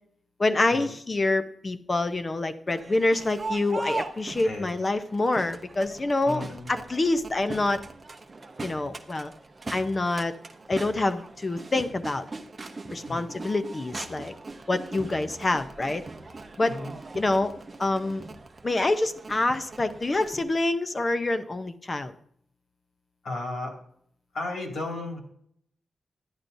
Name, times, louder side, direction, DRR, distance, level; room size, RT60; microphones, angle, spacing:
voice 1, 0.4-7.8 8.6-9.3 9.7-10.3 10.7-12.2 12.9-14.3 14.7-16.0 16.6-16.8 17.1-17.5 17.8-18.2 18.6-22.1, left 2 dB, 25° left, 10 dB, 0.5 m, -26 dB
Crowd, 2.7-20.4, right 3 dB, 25° right, 0.7 m, -40 dB
voice 2, 6.3-6.7 13.0-13.3 16.7-16.9 23.2-23.7 24.3-25.2, left 2 dB, 60° left, 1 dB, 2.2 m, -34 dB
11.0 x 10.5 x 2.6 m, 0.65 s
wide cardioid pair, 165°, 0 cm